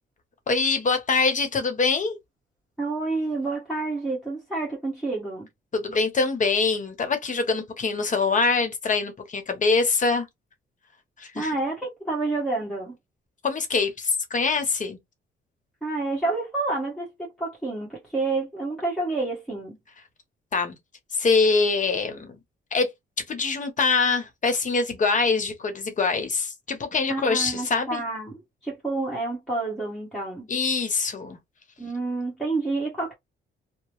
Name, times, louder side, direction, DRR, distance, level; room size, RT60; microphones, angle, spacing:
voice 1, 0.5-2.2 5.7-10.3 11.2-11.5 13.4-15.0 20.5-20.8 21.1-22.4 22.7-22.9 23.3-28.0 30.5-31.4, left 4 dB, 40° left, 1.0 m, -24 dB
voice 2, 2.8-5.5 11.3-12.9 15.8-19.8 27.1-30.5 31.8-33.1, right 3 dB, ahead, 1.2 m, -29 dB
2.9 x 2.0 x 3.0 m
cardioid pair, 90°, 20 cm